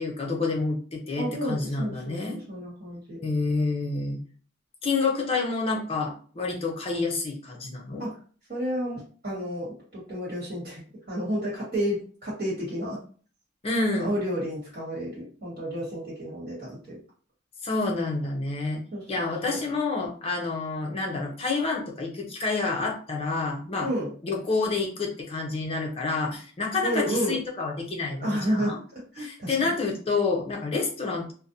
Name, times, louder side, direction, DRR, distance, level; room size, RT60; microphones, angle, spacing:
voice 1, 0.0-2.4 3.2-4.2 4.8-8.0 13.6-14.1 17.6-18.8 19.1-23.9 24.2-28.8 29.2-31.3, left 3 dB, 30° left, 0 dB, 0.5 m, -28 dB
voice 2, 1.2-3.2 8.0-8.1 8.5-10.8 11.1-13.0 14.0-17.0 18.9-19.6 23.8-24.1 26.8-27.4 28.2-29.7, equal, 40° right, -7 dB, 1.2 m, -31 dB
2.5 x 2.1 x 2.7 m, 0.42 s
head